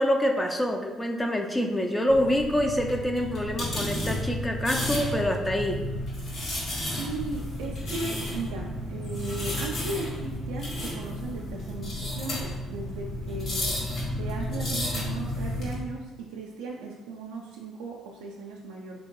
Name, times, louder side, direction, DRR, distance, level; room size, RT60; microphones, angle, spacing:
voice 1, 0.0-5.8, equal, 15° left, 3 dB, 0.4 m, -26 dB
sound 1, 2.1-15.7, left 1 dB, 60° left, 1.3 m, -32 dB
voice 2, 6.9-13.8 14.2-19.0, right 3 dB, 90° right, -2 dB, 0.3 m, -37 dB
3.5 x 2.7 x 3.0 m, 1.2 s
supercardioid pair, 60°, 0 cm